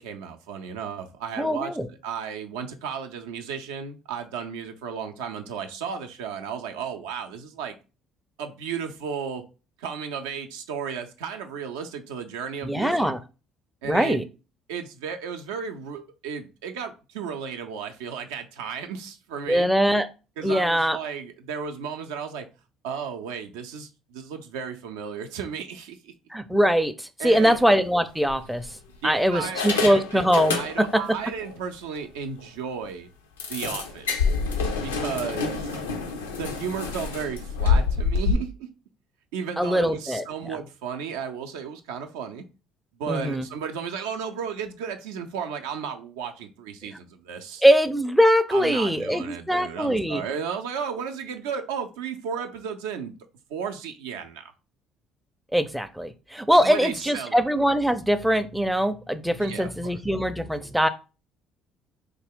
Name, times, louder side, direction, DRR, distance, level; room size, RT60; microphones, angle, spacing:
voice 1, 0.0-1.8 2.0-7.7 8.4-9.4 9.8-13.1 13.8-14.2 14.7-19.7 20.4-22.5 22.8-26.1 27.2-27.6 29.0-30.2 30.5-33.1 33.5-34.3 34.8-35.8 36.4-38.7 39.3-42.4 43.0-47.6 48.5-53.1 53.5-54.4 56.6-57.5 59.4-60.0, right 7 dB, 75° right, 0.4 m, -34 dB
voice 2, 1.4-1.9 12.6-13.2 13.8-14.2 19.5-20.1 20.4-21.0 26.3-28.7 29.0-31.0 39.6-40.5 43.1-43.5 47.6-50.2 55.5-60.9, equal, ahead, 0.4 m, -22 dB
sound 1, 27.4-27.6 28.3-29.0 29.4-31.1 31.4-31.5 32.0-32.1 32.4-32.5 33.4-38.3, left 4 dB, 90° left, 0.5 m, -27 dB
3.3 x 2.3 x 3.5 m
hypercardioid pair, 55°, 0 cm